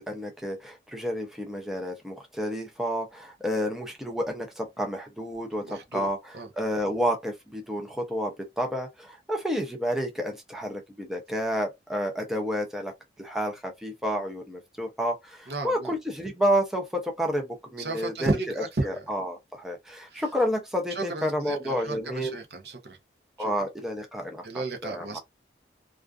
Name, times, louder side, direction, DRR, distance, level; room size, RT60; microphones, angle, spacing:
voice 1, 0.0-22.4 23.4-25.2, equal, ahead, 0.5 m, -30 dB
voice 2, 5.6-6.1 6.3-6.5 15.5-15.9 17.8-19.0 20.1-20.2 20.9-23.0 23.4-23.5 24.4-25.2, right 2 dB, 65° right, 0.7 m, -33 dB
2.4 x 2.3 x 2.3 m
head